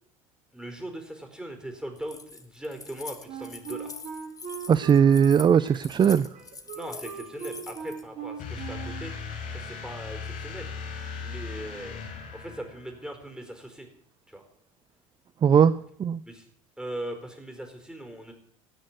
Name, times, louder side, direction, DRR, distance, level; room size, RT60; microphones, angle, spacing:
voice 1, 0.5-4.0 6.7-9.1 9.5-10.8 11.2-12.0 12.3-13.9 14.3-14.4 16.2-16.5 16.8-18.3, right 1 dB, 5° right, 5 dB, 4.5 m, -39 dB
Keys jangling, 2.0-8.0, left 4 dB, 20° left, 1.9 m, -44 dB
Wind instrument woodwind instrument, 3.3-9.1, right 6 dB, 45° right, 3.8 m, -40 dB
voice 2, 4.7-6.3 15.4-15.7 16.0-16.2, right 7 dB, 25° right, 17 dB, 0.5 m, -19 dB
sound 1, 8.4-13.1, left 5 dB, 50° left, 3.4 m, -38 dB
17.5 x 6.4 x 9.1 m, 0.71 s
figure-of-eight pair, 70°, 17 cm